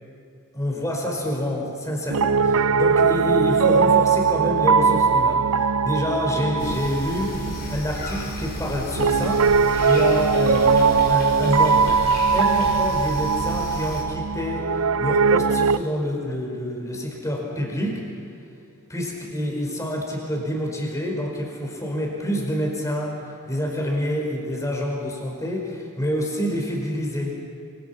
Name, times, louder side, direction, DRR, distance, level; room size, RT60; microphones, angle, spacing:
voice 1, 0.5-5.4 5.8-7.4 7.7-9.5 9.9-12.0 12.3-18.0 18.9-23.2 23.4-27.4, equal, 15° left, 0 dB, 5.2 m, -27 dB
Piano, 2.1-15.8, right 5 dB, 75° right, 0.5 m, -20 dB
sound 1, 6.6-14.0, left 1 dB, 45° left, 4.5 m, -35 dB
26.5 x 26.0 x 5.9 m, 2.7 s
head